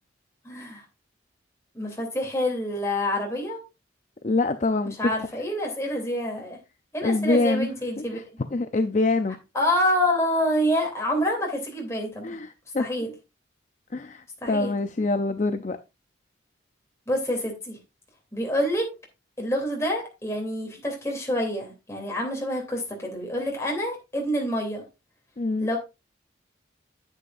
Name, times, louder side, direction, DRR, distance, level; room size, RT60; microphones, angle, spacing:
voice 1, 0.4-0.8 1.7-3.6 4.8-6.6 6.9-8.2 9.5-12.4 12.8-13.1 14.4-14.7 17.1-17.8 18.3-18.9 19.4-24.8 25.6-25.8, equal, 15° left, 2.8 m, -27 dB
voice 2, 4.2-5.1 7.0-7.7 8.0-8.2 8.5-9.4 12.2-12.9 13.9-15.8 25.4-25.7, left 3 dB, 40° left, 0.5 m, -25 dB
9.8 x 8.6 x 2.5 m
head